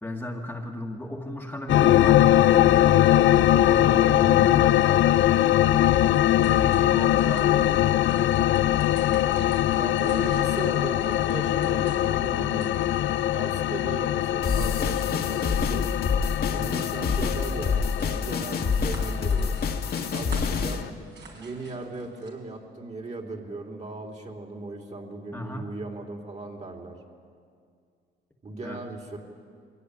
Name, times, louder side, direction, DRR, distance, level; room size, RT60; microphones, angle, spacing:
voice 1, 0.0-3.1 3.6-5.5 6.5-8.8 25.3-25.7 28.6-28.8, left 1 dB, 10° left, 0 dB, 1.9 m, -35 dB
sound 1, 1.7-20.9, left 13 dB, 70° left, 0.7 m, -22 dB
sound 2, 5.8-22.3, right 3 dB, 60° right, 4.9 m, -49 dB
voice 2, 9.8-12.7 13.3-16.1 16.5-19.6 20.1-21.1 21.3-27.0 28.4-29.2, right 2 dB, 35° right, 3 dB, 3.6 m, -37 dB
sound 3, 14.4-20.8, left 5 dB, 50° left, 1.8 m, -27 dB
22.5 x 16.5 x 10.0 m, 2.2 s
cardioid pair, 90°, 20 cm